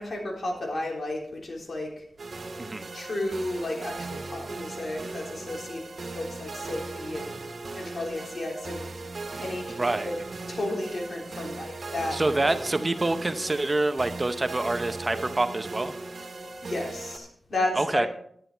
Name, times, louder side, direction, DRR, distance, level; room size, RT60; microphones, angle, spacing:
voice 1, 0.0-2.0 2.9-7.4 7.7-8.9 9.4-10.2 10.5-12.9 16.6-18.1, left 1 dB, 55° left, -1 dB, 3.6 m, -33 dB
sound 1, 2.2-17.2, right 3 dB, 60° right, 1.7 m, -38 dB
voice 2, 9.8-10.1 12.1-15.9 17.8-18.1, right 2 dB, 30° right, 10 dB, 0.7 m, -26 dB
11.0 x 10.5 x 4.5 m, 0.65 s
wide cardioid pair, 95°, 0 cm